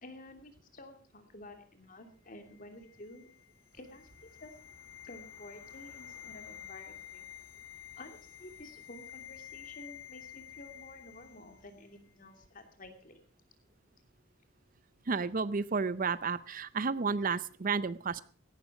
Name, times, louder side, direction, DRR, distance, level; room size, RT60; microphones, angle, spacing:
voice 1, 0.0-3.3 3.7-4.5 5.0-7.2 8.0-13.2, left 1 dB, 45° left, 6 dB, 2.8 m, -51 dB
sound 1, 2.4-11.7 12.0-12.1, left 12 dB, 85° left, 0.6 m, -50 dB
sound 2, 3.7-11.7, right 2 dB, 75° right, 2.8 m, -64 dB
voice 2, 15.1-18.2, right 5 dB, 45° right, 16 dB, 0.6 m, -32 dB
16.5 x 12.5 x 4.8 m, 0.41 s
head